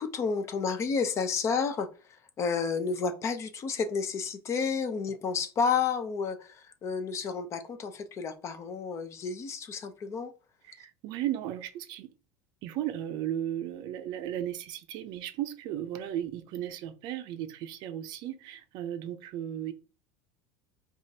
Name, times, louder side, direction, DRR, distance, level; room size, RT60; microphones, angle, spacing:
voice 1, 0.0-1.9 2.4-10.3, left 5 dB, 30° left, 0.6 m, -31 dB
voice 2, 10.6-12.1 12.6-19.7, right 11 dB, 55° right, 0.5 m, -35 dB
4.9 x 2.5 x 2.7 m
supercardioid pair, 140°, 9 cm